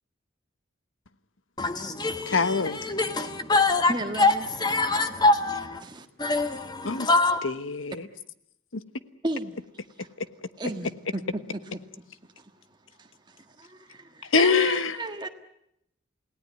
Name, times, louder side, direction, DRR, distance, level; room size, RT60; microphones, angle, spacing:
voice 1, 1.6-5.8 6.2-7.4, left 3 dB, 20° left, 1.3 m, -24 dB
voice 2, 2.3-2.8 6.8-7.1 7.4-8.1 8.7-8.8 14.3-15.0, left 5 dB, 90° left, 1.2 m, -24 dB
voice 3, 3.9-4.5 5.8-6.1 9.2-9.6 10.0-10.1 10.6-11.2 12.4-12.5 13.0-15.3, right 2 dB, 25° right, 1.7 m, -34 dB
29.0 x 17.5 x 9.4 m
head